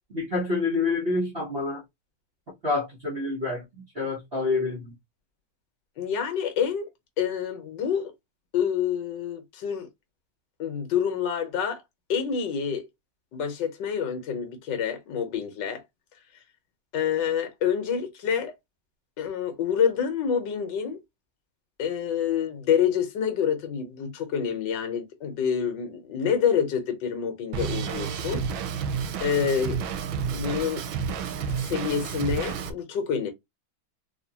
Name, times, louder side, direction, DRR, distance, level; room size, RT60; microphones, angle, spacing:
voice 1, 0.1-1.8 2.6-3.6 3.9-4.9, left 3 dB, 40° right, 0.9 m, -27 dB
voice 2, 6.0-6.9 7.2-8.1 8.5-9.9 10.6-11.8 12.1-12.9 13.3-15.8 16.9-18.5 19.2-21.0 21.8-28.4 29.2-29.8 30.3-30.8 31.7-33.3, left 7 dB, 65° left, 1.4 m, -27 dB
Drum kit, 27.5-32.7, right 6 dB, 90° right, 1.4 m, -30 dB
3.7 x 2.7 x 2.8 m
omnidirectional pair, 2.2 m